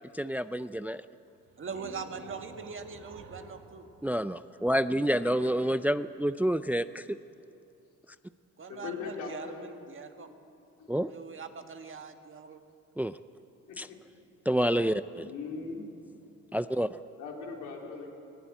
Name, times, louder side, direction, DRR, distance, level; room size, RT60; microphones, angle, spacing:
voice 1, 0.1-1.0 4.0-7.2 10.9-11.1 13.0-13.2 13.8-13.9 14.5-15.3 16.5-17.0, equal, 5° right, 13 dB, 0.4 m, -28 dB
sound 1, 1.3-4.9, right 4 dB, 85° right, 2.2 m, -51 dB
voice 2, 1.6-3.9 8.6-10.3 11.1-12.6, right 5 dB, 40° right, 6 dB, 1.7 m, -42 dB
voice 3, 8.7-9.7 10.4-10.5 10.8-11.0 13.7-14.0 15.1-15.8 17.2-18.1, left 5 dB, 90° left, 0 dB, 3.7 m, -40 dB
19.5 x 17.5 x 9.0 m, 2.6 s
cardioid pair, 90°, 30 cm